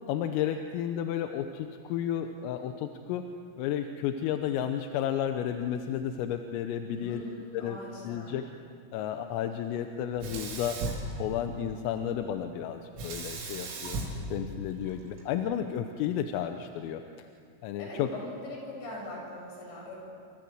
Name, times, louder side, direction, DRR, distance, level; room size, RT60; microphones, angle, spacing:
voice 1, 0.1-3.3 3.6-7.3 7.5-8.5 8.9-10.8 11.2-14.0 14.3-17.3 17.6-18.1, left 10 dB, 85° left, 6 dB, 3.6 m, -32 dB
voice 2, 6.8-8.4 17.8-20.0, left 2 dB, 60° left, -2 dB, 9.9 m, -42 dB
Sink (filling or washing), 10.2-11.8 13.0-15.2, right 2 dB, 80° right, 6.1 m, -37 dB
28.5 x 26.5 x 7.8 m, 2.3 s
omnidirectional pair, 5.9 m